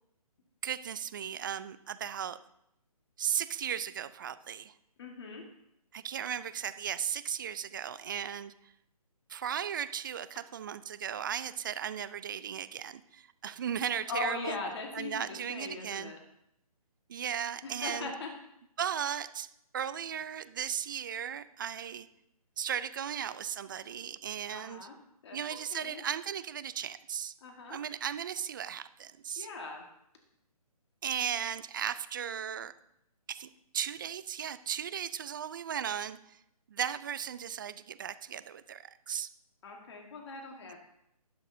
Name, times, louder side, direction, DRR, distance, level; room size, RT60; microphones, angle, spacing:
voice 1, 0.6-2.4 3.2-4.7 5.9-8.7 9.3-14.6 14.9-16.1 17.1-18.1 18.8-22.1 22.6-24.9 25.3-27.3 27.7-29.5 31.0-32.7 33.3-36.4 36.7-39.3, right 9 dB, 35° right, 14 dB, 0.4 m, -36 dB
voice 2, 5.0-5.5 14.1-16.2 17.6-18.3 24.5-25.0 25.2-26.0 27.4-27.8 29.4-29.9 39.6-40.9, left 3 dB, 45° left, 2 dB, 1.6 m, -40 dB
18.5 x 6.4 x 2.7 m, 0.79 s
figure-of-eight pair, 150°, 20 cm